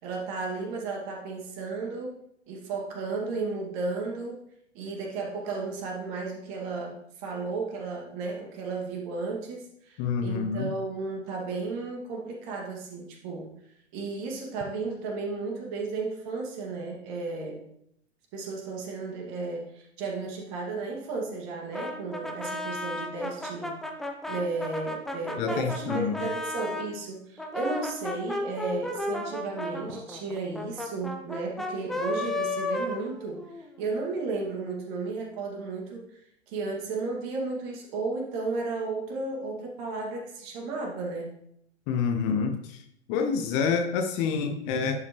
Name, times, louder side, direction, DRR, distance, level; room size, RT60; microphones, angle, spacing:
voice 1, 0.0-2.2 2.5-4.4 4.7-13.5 13.9-17.6 18.3-23.8 24.3-36.1 36.5-41.3, right 3 dB, 40° right, -1 dB, 2.3 m, -34 dB
voice 2, 10.0-10.7 25.4-26.3 41.9-42.8 43.1-45.0, left 6 dB, 35° left, 5 dB, 0.9 m, -27 dB
Brass instrument, 21.7-26.9 27.4-33.7, left 1 dB, ahead, 0.3 m, -34 dB
11.0 x 5.3 x 3.2 m, 0.73 s
figure-of-eight pair, 100°, 35 cm